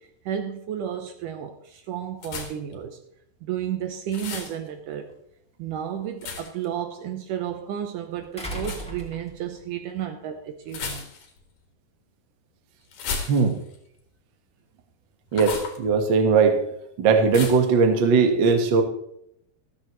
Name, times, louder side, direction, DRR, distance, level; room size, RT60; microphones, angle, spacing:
voice 1, 0.3-3.0 3.4-5.1 5.6-11.1, right 9 dB, 75° right, 2.1 m, -32 dB
sound 1, 2.2-2.7 4.1-4.6 6.2-6.7 8.6-8.9 10.7-11.4 12.9-13.8 15.3-15.8 17.3-17.7, left 5 dB, 65° left, 3.2 m, -34 dB
sound 2, 5.1-5.2 8.4-9.7 11.0-11.1, right 1 dB, ahead, 1.9 m, -36 dB
voice 2, 13.3-13.6 15.3-16.6 17.0-18.8, right 5 dB, 50° right, 1.5 m, -19 dB
14.5 x 13.0 x 3.1 m
omnidirectional pair, 4.2 m